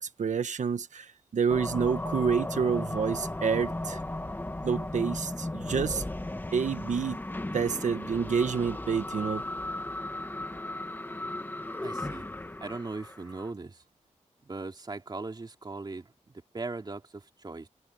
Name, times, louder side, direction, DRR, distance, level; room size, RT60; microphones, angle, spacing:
voice 1, 0.0-4.0 4.6-6.0 6.5-7.2 7.5-9.4, right 6 dB, 75° right, 1.4 m, -28 dB
sound 1, 1.5-13.5, left 1 dB, 15° left, 1.6 m, -36 dB
voice 2, 11.8-12.3 12.6-13.8 14.4-17.7, right 3 dB, 35° right, 3.1 m, -39 dB
wide cardioid pair, 125°, 13 cm